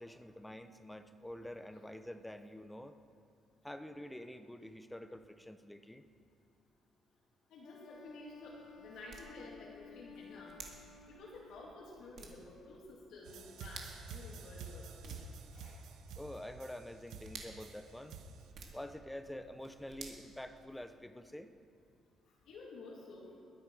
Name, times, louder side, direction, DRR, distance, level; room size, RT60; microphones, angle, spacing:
voice 1, 0.0-3.0 3.6-6.0 16.2-18.2 18.7-21.5, left 1 dB, 5° left, 9 dB, 0.7 m, -47 dB
voice 2, 7.5-10.6 11.1-15.2 15.5-15.8 16.1-16.2 22.5-23.3, left 2 dB, 70° left, -5 dB, 2.8 m, -52 dB
Wind instrument woodwind instrument, 7.6-11.9, left 5 dB, 45° left, 0.8 m, -56 dB
sound 1, 7.9-21.1, right 4 dB, 50° right, 2.2 m, -56 dB
sound 2, 13.2-18.5, right 4 dB, 80° right, 1.3 m, -49 dB
21.0 x 10.5 x 5.0 m, 2.5 s
cardioid pair, 145°, 0 cm